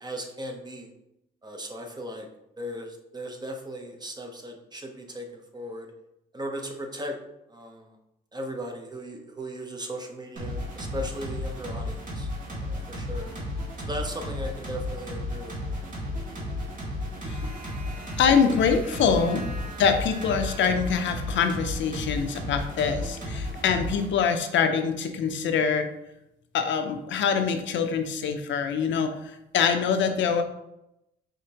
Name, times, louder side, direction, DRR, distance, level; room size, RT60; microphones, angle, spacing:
voice 1, 0.0-0.9 1.4-2.3 2.6-5.9 6.3-7.2 7.5-8.0 8.3-13.3 13.8-15.9 17.4-17.5, equal, 20° right, 4 dB, 0.8 m, -37 dB
sound 1, 10.4-24.1, left 1 dB, 40° right, 1.6 m, -33 dB
voice 2, 18.2-19.4 19.8-25.9 26.5-30.4, left 6 dB, 70° left, 7 dB, 0.6 m, -24 dB
5.0 x 3.5 x 2.9 m, 0.86 s
cardioid pair, 90°, 20 cm